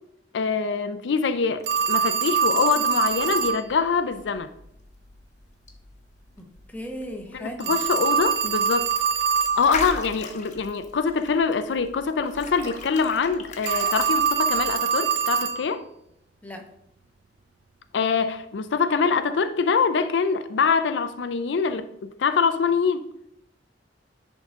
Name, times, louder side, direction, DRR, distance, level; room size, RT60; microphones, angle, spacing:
voice 1, 0.3-4.5 7.3-8.9 9.6-15.8 17.9-23.1, left 5 dB, 80° left, 0.5 m, -24 dB
Telephone, 1.7-3.6 7.6-9.6 13.6-15.6, right 7 dB, 65° right, 0.5 m, -23 dB
sound 1, 3.0-14.7, left 3 dB, 45° left, 1.0 m, -40 dB
voice 2, 6.4-7.8 16.4-16.7, equal, 10° left, 0.9 m, -37 dB
10.5 x 3.7 x 3.6 m
head